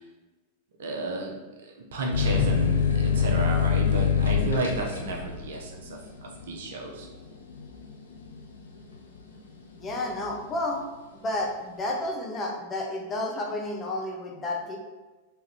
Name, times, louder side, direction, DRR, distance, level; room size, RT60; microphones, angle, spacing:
voice 1, 0.8-7.1, right 2 dB, 60° right, 1 dB, 0.7 m, -33 dB
sound 1, 2.1-9.4 9.8-10.6, left 7 dB, 70° left, 0.5 m, -26 dB
sound 2, 2.3-4.5 4.8-4.9, equal, 20° right, 0.8 m, -37 dB
voice 2, 9.7-10.8 11.1-14.8, left 2 dB, 20° left, 0 dB, 0.7 m, -31 dB
3.5 x 3.0 x 3.3 m, 1.2 s
figure-of-eight pair, 90°, 0 cm